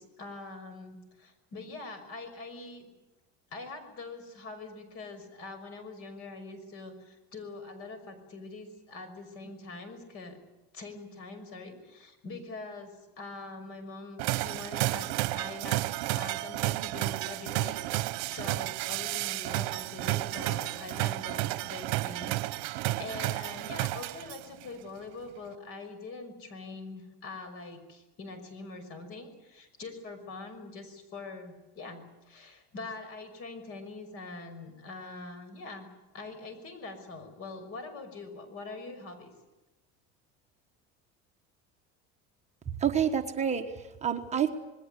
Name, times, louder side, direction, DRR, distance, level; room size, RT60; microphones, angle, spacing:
voice 1, 0.0-2.9 3.5-10.4 10.7-15.1 15.3-15.8 16.1-35.9 36.1-39.3, left 3 dB, 50° left, 10 dB, 5.9 m, -43 dB
sound 1, 14.2-24.6, right 18 dB, 75° right, 1.0 m, -32 dB
voice 2, 42.8-44.5, right 8 dB, 20° right, 4 dB, 1.3 m, -28 dB
27.5 x 20.5 x 8.3 m, 1.1 s
cardioid pair, 155°, 31 cm